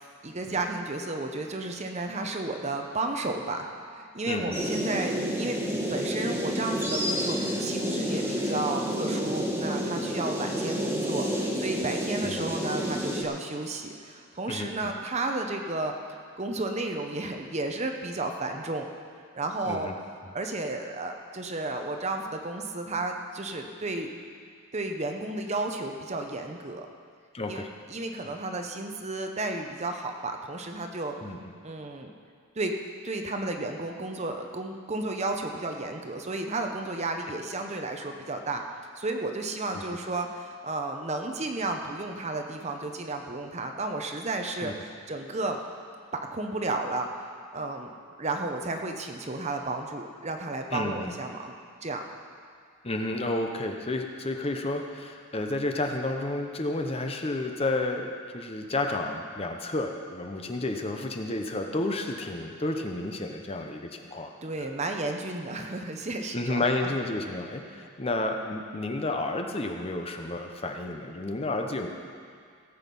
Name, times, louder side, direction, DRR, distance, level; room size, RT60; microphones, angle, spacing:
voice 1, 0.2-5.6 5.9-15.9 16.4-18.9 19.3-19.9 20.3-24.1 24.7-26.9 27.5-27.6 27.9-31.1 31.6-32.1 32.5-32.7 33.0-38.6 39.0-45.6 46.1-47.1 47.5-47.9 48.2-51.5 51.8-52.0 64.4-66.9 67.7-67.9, right 2 dB, 30° right, 4 dB, 0.8 m, -32 dB
voice 2, 4.3-4.6 12.2-12.4 14.5-14.9 19.6-19.9 27.3-27.7 31.2-31.4 39.7-39.8 44.6-44.7 50.7-51.2 52.8-64.3 64.6-64.7 66.3-71.9, left 2 dB, 25° left, 4 dB, 0.7 m, -31 dB
sound 1, 4.5-13.2, equal, 10° right, 1.3 m, -29 dB
17.5 x 8.1 x 5.4 m, 2.1 s
head